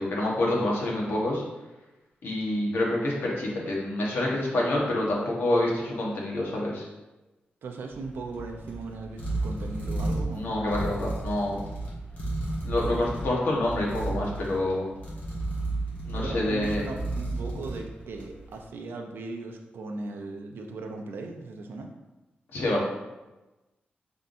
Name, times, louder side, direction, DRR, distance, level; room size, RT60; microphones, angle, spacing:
voice 1, 0.0-1.4 2.2-6.9 10.3-11.6 12.6-14.9 16.0-16.8 22.5-22.8, left 1 dB, 75° left, -3 dB, 1.3 m, -27 dB
voice 2, 7.6-10.6 16.1-21.9, right 3 dB, 75° right, 3 dB, 0.6 m, -38 dB
sound 1, 7.9-18.5, right 2 dB, 40° left, 1.3 m, -33 dB
5.5 x 3.5 x 2.6 m, 1.1 s
wide cardioid pair, 175°, 4 cm